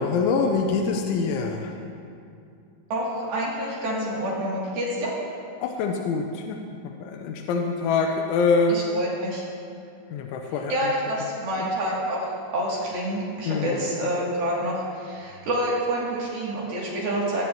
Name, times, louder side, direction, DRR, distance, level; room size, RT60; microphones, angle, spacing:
voice 1, 0.0-1.8 5.6-8.8 10.1-10.8 13.5-13.8, left 4 dB, 80° left, 2 dB, 2.9 m, -25 dB
voice 2, 2.9-5.1 8.7-9.4 10.5-17.4, right 1 dB, 55° right, -5 dB, 4.0 m, -28 dB
21.5 x 15.5 x 2.9 m, 2.5 s
omnidirectional pair, 5.9 m